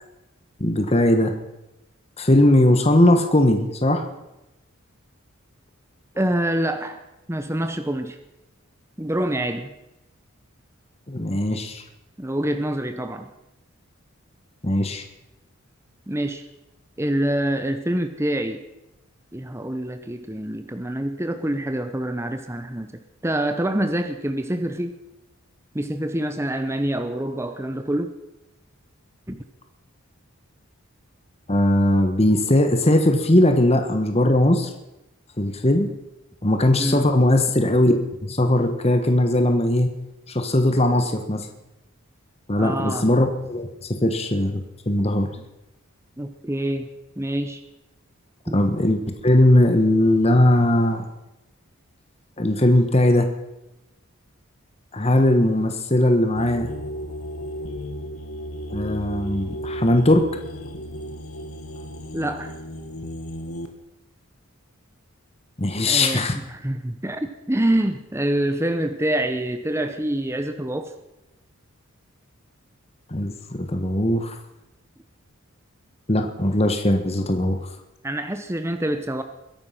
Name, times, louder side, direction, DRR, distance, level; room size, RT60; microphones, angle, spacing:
voice 1, 0.6-1.3 2.2-4.0 11.1-11.8 14.6-15.0 31.5-34.7 35.4-35.9 36.4-39.9 40.3-41.5 42.5-45.3 48.5-51.1 52.4-53.3 54.9-56.7 58.7-60.3 65.6-66.4 73.1-74.3 76.1-77.6, left 1 dB, 30° left, 6 dB, 1.4 m, -19 dB
voice 2, 6.2-8.2 9.0-9.7 12.2-13.3 16.1-16.4 17.0-18.6 19.3-24.9 25.7-28.1 29.3-29.4 36.8-37.1 42.6-43.1 46.2-46.9 47.2-47.6 48.5-48.6 62.1-62.5 65.8-70.9 78.0-79.2, right 1 dB, 10° right, 7 dB, 0.8 m, -26 dB
sound 1, 56.4-63.7, equal, 85° left, 2.0 m, -34 dB
22.0 x 11.0 x 5.8 m, 0.94 s
head